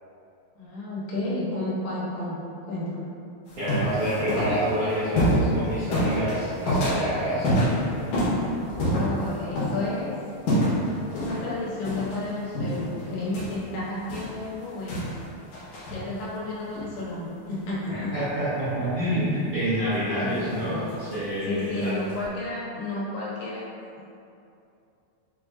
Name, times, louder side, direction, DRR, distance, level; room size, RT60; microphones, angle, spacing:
voice 1, 0.6-3.1 8.7-10.1 11.1-15.2 15.9-18.1 20.1-20.4 21.4-23.7, left 2 dB, 90° left, -7 dB, 3.0 m, -32 dB
sound 1, 3.5-9.9 10.5-10.9 11.2-11.5 11.8-12.2 12.5-15.3 15.5-16.1 16.8-16.9 19.9-21.1 21.8-22.2, equal, 70° left, 2.1 m, -27 dB
voice 2, 3.6-7.5 17.9-21.9, equal, 75° right, -15 dB, 1.4 m, -27 dB
6.3 x 2.6 x 2.4 m, 2.6 s
omnidirectional pair, 4.4 m